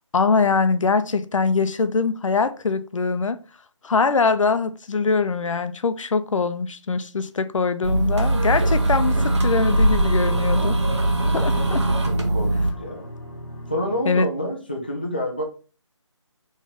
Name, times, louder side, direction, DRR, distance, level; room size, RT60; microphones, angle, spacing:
voice 1, 0.1-3.4 3.8-10.8 11.3-11.8 14.1-14.3, left 4 dB, 80° left, 0.5 m, -22 dB
sound 1, 7.8-12.7, right 1 dB, 60° right, 1.0 m, -21 dB
sound 2, 8.0-14.0, equal, 35° left, 1.5 m, -38 dB
voice 2, 12.1-13.1 13.7-15.4, left 1 dB, 20° left, 0.3 m, -28 dB
3.3 x 3.1 x 3.7 m
figure-of-eight pair, 170°, 16 cm